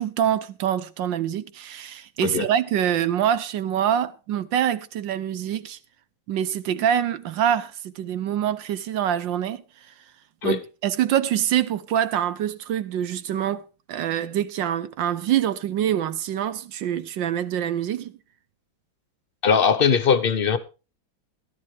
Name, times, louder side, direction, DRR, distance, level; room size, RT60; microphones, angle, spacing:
voice 1, 0.0-5.8 6.3-9.6 10.4-18.1, right 10 dB, 70° right, 1.5 m, -25 dB
voice 2, 19.4-20.6, left 6 dB, 45° left, 0.7 m, -20 dB
16.0 x 11.5 x 3.3 m
omnidirectional pair, 2.2 m